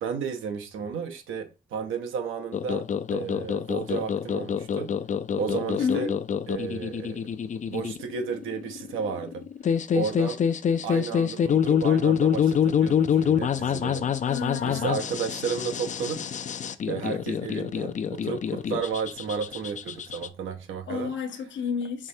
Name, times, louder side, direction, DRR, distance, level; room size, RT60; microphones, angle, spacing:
voice 1, 0.0-2.8 3.1-5.0 5.3-6.1 6.5-7.2 7.7-9.4 9.9-10.4 10.8-14.1 14.6-16.3 16.9-21.2, right 6 dB, 85° right, 0.8 m, -33 dB
sound 1, 2.5-20.3, left 8 dB, 40° left, 0.4 m, -26 dB
voice 2, 5.8-6.1 14.3-14.9 20.9-22.1, left 6 dB, 65° left, 0.8 m, -30 dB
4.7 x 3.2 x 2.7 m
cardioid pair, 85°, 20 cm